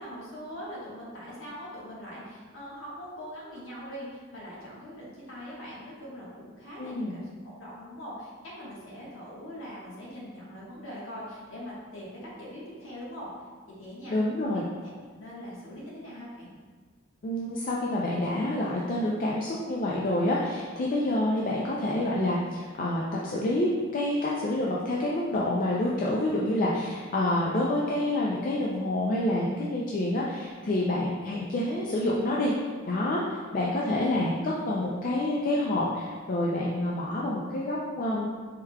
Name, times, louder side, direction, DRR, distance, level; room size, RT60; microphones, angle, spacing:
voice 1, 0.0-13.3 13.8-14.2 14.4-16.5 30.6-30.8 33.7-34.0, equal, 65° left, -6 dB, 1.2 m, -42 dB
voice 2, 6.8-7.1 14.1-14.6 17.2-32.5 32.9-33.2 33.5-38.3, left 1 dB, 45° left, -4 dB, 0.4 m, -28 dB
4.8 x 3.5 x 2.2 m, 1.5 s
head